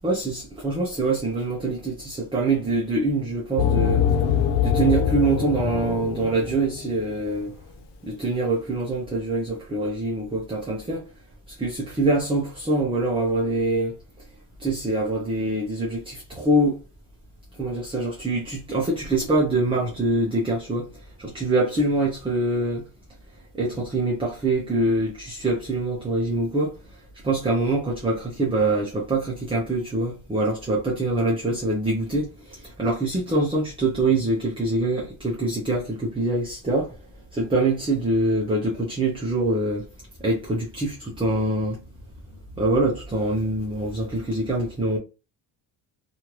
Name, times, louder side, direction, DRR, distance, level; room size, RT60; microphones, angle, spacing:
voice 1, 0.0-4.1 4.6-7.5 8.0-11.1 11.5-14.0 14.6-16.8 17.6-22.9 23.5-27.0 27.2-37.0 37.3-39.9 40.2-41.8 42.6-45.0, right 2 dB, 15° right, 0.6 m, -24 dB
sound 1, 3.6-7.0, left 8 dB, 75° left, 0.5 m, -23 dB
3.1 x 2.5 x 2.9 m
cardioid pair, 155°, 43 cm